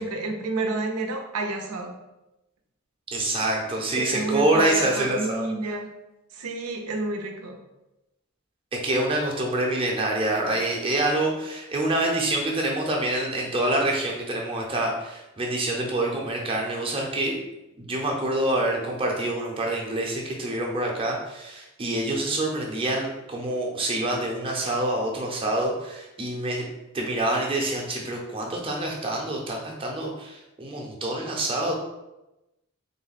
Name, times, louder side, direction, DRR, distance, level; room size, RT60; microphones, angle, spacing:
voice 1, 0.0-1.9 4.0-5.9 6.3-7.6, right 2 dB, 90° right, 4 dB, 0.5 m, -30 dB
voice 2, 3.1-5.5 8.7-17.4 17.8-26.6 26.9-31.7, right 1 dB, 25° right, -1 dB, 0.6 m, -26 dB
3.3 x 2.2 x 4.0 m, 0.95 s
head